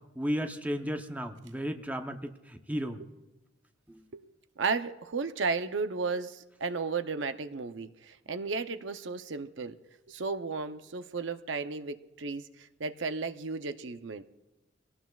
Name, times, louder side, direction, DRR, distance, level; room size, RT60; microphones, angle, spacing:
voice 1, 0.2-3.0 3.9-4.0, equal, 10° right, 0.8 m, -34 dB
voice 2, 4.1-9.8 10.1-14.2, right 4 dB, 70° right, 0.7 m, -34 dB
23.5 x 18.0 x 2.4 m
head